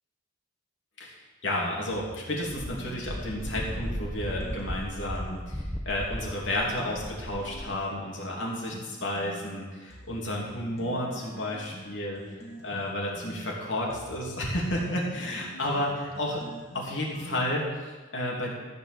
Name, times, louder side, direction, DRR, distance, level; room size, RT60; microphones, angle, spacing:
voice 1, 1.0-12.2 12.6-16.4 16.7-18.6, left 1 dB, 75° left, -3 dB, 2.9 m, -32 dB
sound 1, 1.9-5.4 5.9-9.4 9.9-17.7, equal, 35° left, 2.6 m, -46 dB
Wind, 2.5-7.8, equal, 5° left, 0.7 m, -36 dB
14.0 x 5.5 x 7.1 m, 1.3 s
head